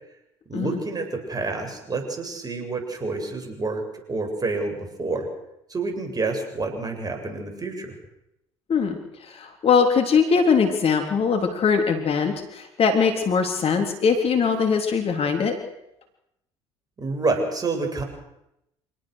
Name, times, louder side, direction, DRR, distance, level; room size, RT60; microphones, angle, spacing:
voice 1, 0.5-5.3 5.7-7.9 17.0-18.0, right 3 dB, 30° right, 4 dB, 7.6 m, -28 dB
voice 2, 9.3-15.5, left 5 dB, 45° left, 5 dB, 3.6 m, -21 dB
26.5 x 18.5 x 6.6 m, 0.84 s
hypercardioid pair, 60°, 14 cm